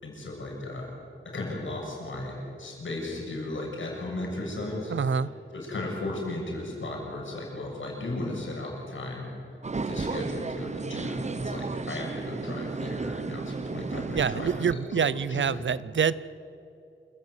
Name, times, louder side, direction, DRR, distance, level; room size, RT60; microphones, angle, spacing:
voice 1, 0.0-0.9 1.2-4.9 5.5-9.3 9.9-15.7, left 2 dB, 70° left, -1 dB, 7.1 m, -35 dB
voice 2, 4.9-5.3 14.1-16.1, right 6 dB, 65° right, 19 dB, 0.7 m, -26 dB
sound 1, 9.6-14.7, right 3 dB, 35° right, 0.8 m, -33 dB
27.5 x 15.0 x 9.5 m, 2.7 s
wide cardioid pair, 85°, 21 cm